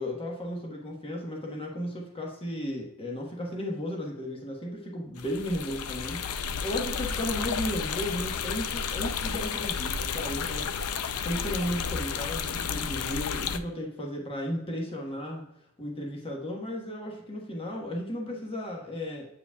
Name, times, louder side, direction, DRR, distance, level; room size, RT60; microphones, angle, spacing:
voice 1, 0.0-11.0 11.2-15.4 15.8-19.3, equal, 25° left, -1 dB, 1.2 m, -34 dB
sound 1, 5.2-13.6, left 6 dB, 75° left, 0.5 m, -32 dB
8.3 x 4.9 x 2.3 m, 0.76 s
head